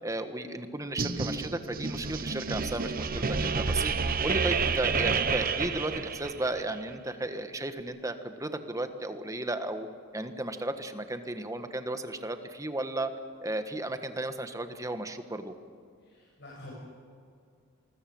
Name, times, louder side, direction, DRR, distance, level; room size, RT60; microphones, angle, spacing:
voice 1, 0.0-3.9 4.2-9.9 10.1-13.1 13.4-15.5, right 2 dB, 15° right, 8 dB, 1.5 m, -34 dB
sound 1, 1.0-6.6, right 4 dB, 45° right, 1.1 m, -29 dB
voice 2, 16.0-16.7, left 1 dB, 55° left, -4 dB, 7.7 m, -48 dB
27.5 x 21.0 x 7.9 m, 2.3 s
head